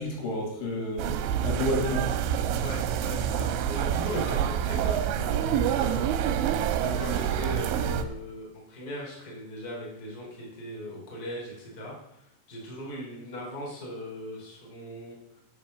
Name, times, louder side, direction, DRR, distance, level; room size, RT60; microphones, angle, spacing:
voice 1, 0.0-2.2, left 1 dB, 85° left, -3 dB, 5.7 m, -31 dB
sound 1, 1.0-8.0, right 9 dB, 90° right, 3.1 m, -27 dB
voice 2, 2.6-6.1 6.5-15.2, equal, 20° left, -3 dB, 3.5 m, -38 dB
10.5 x 7.9 x 6.5 m, 0.83 s
omnidirectional pair, 5.4 m